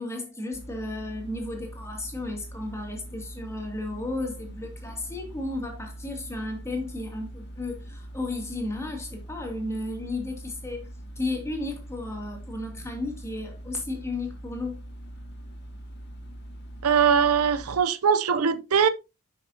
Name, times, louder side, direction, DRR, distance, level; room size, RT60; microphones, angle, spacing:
voice 1, 0.0-10.9 11.2-14.8, left 2 dB, 10° left, 2.5 m, -34 dB
sound 1, 0.5-17.8, right 1 dB, 50° left, 2.0 m, -42 dB
voice 2, 16.8-18.9, right 7 dB, 75° right, 0.6 m, -21 dB
10.5 x 6.1 x 2.8 m
head